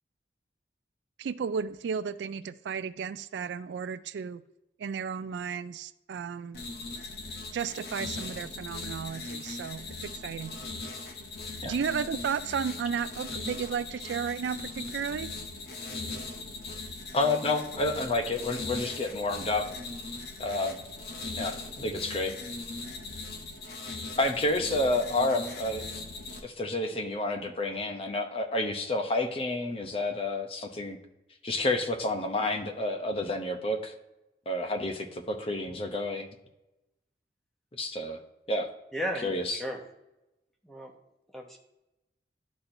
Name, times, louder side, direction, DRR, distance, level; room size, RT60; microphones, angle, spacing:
voice 1, 1.2-4.4 4.8-6.6 7.5-10.6 11.6-15.3, right 6 dB, 80° right, 15 dB, 0.3 m, -33 dB
sound 1, 6.5-26.4, left 3 dB, 65° left, 1.0 m, -39 dB
voice 2, 17.1-19.7 20.4-20.8 21.4-22.3 24.2-25.8 26.4-31.0 31.4-33.9 34.5-36.3 37.7-38.2 38.5-38.7 39.2-39.6, left 2 dB, 30° left, 5 dB, 0.7 m, -29 dB
voice 3, 38.9-39.8 40.6-40.9 41.3-41.6, equal, ahead, 0 dB, 1.0 m, -35 dB
11.5 x 4.3 x 2.6 m, 0.95 s
head